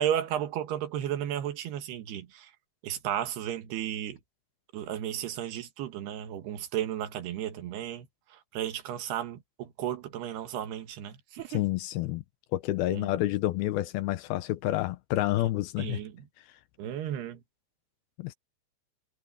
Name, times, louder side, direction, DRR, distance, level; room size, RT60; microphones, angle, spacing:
voice 1, 0.0-2.5 2.8-4.2 4.7-8.1 8.5-11.6 12.9-13.1 15.8-16.1 16.8-17.4, right 11 dB, 75° right, 3.5 m, -33 dB
voice 2, 11.5-12.2 12.5-16.0 18.2-18.3, left 16 dB, 80° left, 2.4 m, -29 dB
omnidirectional pair, 4.7 m